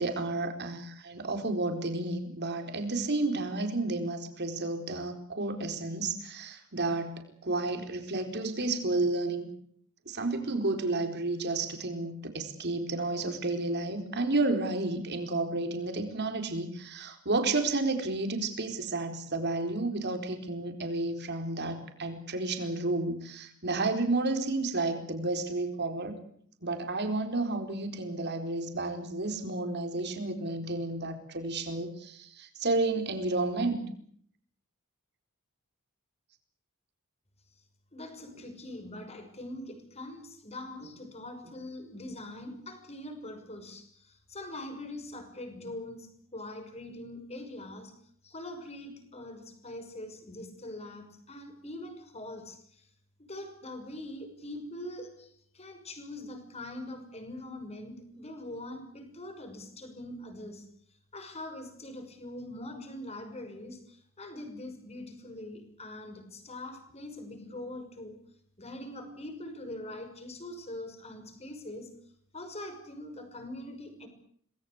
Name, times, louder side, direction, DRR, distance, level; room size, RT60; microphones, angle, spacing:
voice 1, 0.0-9.5 10.1-26.2 26.6-33.8, right 2 dB, 55° right, 6 dB, 4.4 m, -31 dB
voice 2, 37.9-47.9 48.2-52.9 53.2-60.7 61.1-68.2 68.6-71.9 72.3-74.1, left 1 dB, 30° left, 7 dB, 6.0 m, -43 dB
26.5 x 20.0 x 8.1 m, 0.64 s
head